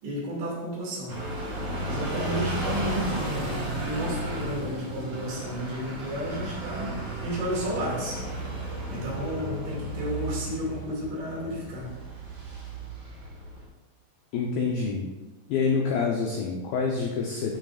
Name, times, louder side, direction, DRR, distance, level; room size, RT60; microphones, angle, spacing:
voice 1, 0.0-1.2 1.8-8.2 8.9-11.9, equal, 75° right, -4 dB, 4.6 m, -32 dB
sound 1, 1.1-13.6, right 1 dB, 45° right, 3.5 m, -34 dB
voice 2, 14.3-15.1 15.5-17.6, left 5 dB, 80° left, -1 dB, 2.0 m, -27 dB
13.0 x 6.3 x 2.5 m, 1.2 s
omnidirectional pair, 5.2 m